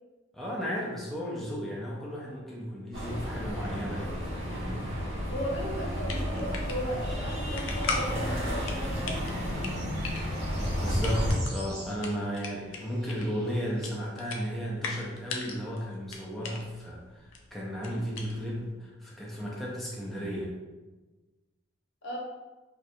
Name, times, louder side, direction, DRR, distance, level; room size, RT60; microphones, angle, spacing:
voice 1, 0.3-4.8 10.8-20.5, equal, ahead, -5 dB, 0.4 m, -34 dB
sound 1, 2.9-11.4, equal, 85° right, 1.5 m, -32 dB
voice 2, 5.3-9.3 22.0-22.2, equal, 65° left, -4 dB, 1.0 m, -36 dB
sound 2, 5.9-18.7, left 4 dB, 85° left, 0.5 m, -40 dB
sound 3, 6.5-14.1, right 2 dB, 55° right, 0.6 m, -50 dB
4.2 x 2.3 x 2.5 m, 1.2 s
head